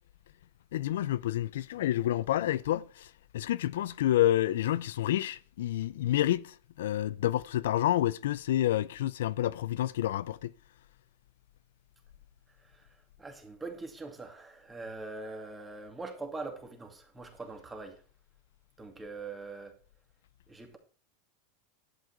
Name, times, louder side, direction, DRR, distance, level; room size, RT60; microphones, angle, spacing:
voice 1, 0.7-10.5, left 13 dB, 85° left, 0.5 m, -29 dB
voice 2, 13.2-18.0 18.8-19.7 20.5-20.8, right 3 dB, 15° right, 2.3 m, -42 dB
11.0 x 8.0 x 4.5 m
supercardioid pair, 130°, 0 cm